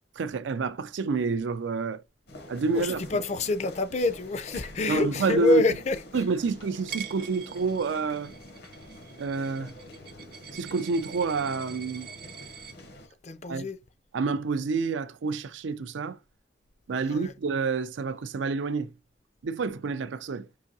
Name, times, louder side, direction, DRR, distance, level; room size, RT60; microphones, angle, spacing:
voice 1, 0.2-2.0 2.5-3.1 4.9-5.6 6.1-8.3 9.2-9.7 10.5-12.1 13.5-13.7 14.1-16.2 16.9-18.9 19.4-20.5, right 4 dB, 90° right, 0.4 m, -28 dB
sound 1, 2.3-13.1, left 1 dB, 60° left, 0.8 m, -46 dB
voice 2, 2.7-6.0 13.2-13.8, left 2 dB, 40° left, 0.4 m, -26 dB
Coin (dropping), 6.9-12.7, right 8 dB, 55° right, 0.7 m, -44 dB
5.5 x 2.7 x 2.7 m
head